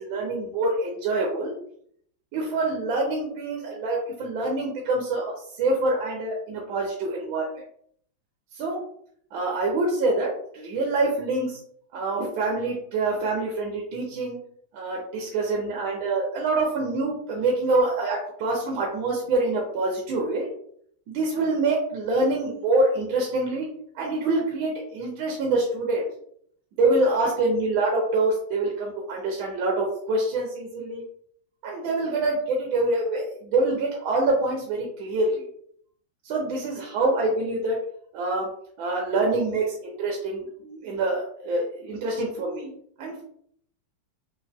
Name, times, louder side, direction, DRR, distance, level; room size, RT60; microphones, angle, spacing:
voice 1, 0.0-1.5 2.3-7.5 8.5-8.8 9.3-11.6 11.9-14.4 14.7-20.5 21.1-23.7 23.9-26.1 26.8-31.0 31.6-35.4 36.2-37.8 38.1-38.5 38.8-42.7 43.0-43.2, right 2 dB, 80° right, -2 dB, 1.4 m, -25 dB
4.0 x 2.1 x 2.2 m, 0.65 s
omnidirectional pair, 2.2 m